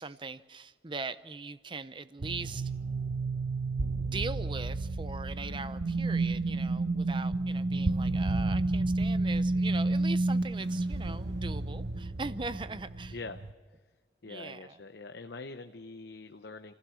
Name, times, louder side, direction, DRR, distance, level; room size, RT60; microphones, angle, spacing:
voice 1, 0.0-2.7 3.9-13.2 14.2-14.8, right 3 dB, 25° right, 13 dB, 0.7 m, -40 dB
sound 1, 2.2-13.5, right 2 dB, 80° right, 0.9 m, -31 dB
voice 2, 14.2-16.7, left 3 dB, 75° left, 7 dB, 0.8 m, -44 dB
29.5 x 16.0 x 6.4 m, 1.4 s
head